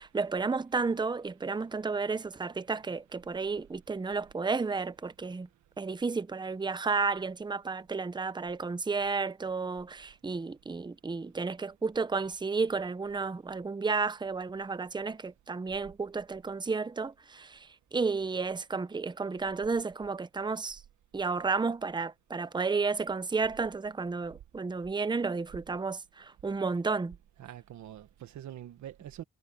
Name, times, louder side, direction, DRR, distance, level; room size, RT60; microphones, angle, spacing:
voice 1, 0.0-5.5 5.8-20.8 21.1-27.2, right 4 dB, 15° right, 0.8 m, -32 dB
voice 2, 27.4-29.2, right 11 dB, 70° right, 1.6 m, -44 dB
cardioid pair, 90°, 30 cm